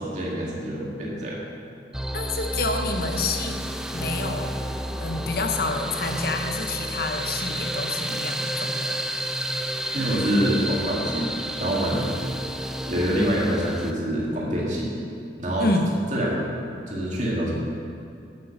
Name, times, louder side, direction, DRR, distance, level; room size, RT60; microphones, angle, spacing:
voice 1, 0.0-1.5 9.9-12.1 12.9-14.9 15.4-15.7 16.1-16.5 16.9-17.5, equal, 40° right, -5 dB, 2.1 m, -26 dB
sound 1, 1.9-13.9, right 1 dB, 5° right, 0.3 m, -31 dB
voice 2, 2.1-3.6 3.9-4.6 5.0-9.0 15.6-15.9, left 3 dB, 55° left, 4 dB, 0.9 m, -28 dB
8.3 x 8.2 x 6.5 m, 2.6 s
head